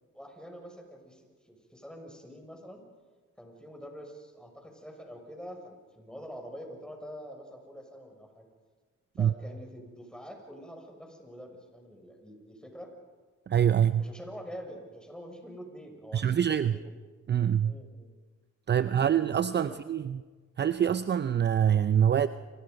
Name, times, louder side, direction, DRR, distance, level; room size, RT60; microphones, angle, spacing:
voice 1, 0.1-2.8 3.4-8.5 9.2-12.9 14.0-16.9 17.6-18.1 18.7-19.8, equal, 5° left, 2 dB, 6.5 m, -46 dB
voice 2, 13.5-14.0 16.1-16.7 17.3-17.7 18.7-20.2 20.6-22.3, right 9 dB, 35° right, 13 dB, 0.6 m, -25 dB
30.0 x 24.0 x 5.4 m, 1.4 s
cardioid pair, 90°, 30 cm